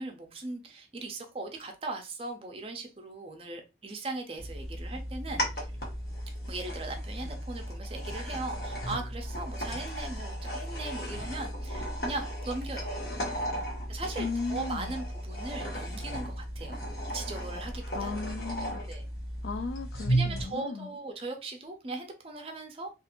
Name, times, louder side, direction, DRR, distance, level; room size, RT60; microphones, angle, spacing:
voice 1, 0.0-5.7 6.5-12.9 13.9-16.8 17.1-18.1 18.9-19.0 20.1-22.9, right 2 dB, 30° right, 0.5 m, -39 dB
sound 1, 4.4-20.4, right 1 dB, 55° left, 0.9 m, -35 dB
voice 2, 14.2-14.9 17.9-18.8 19.4-20.9, left 4 dB, 75° left, 0.4 m, -36 dB
2.5 x 2.4 x 2.8 m
head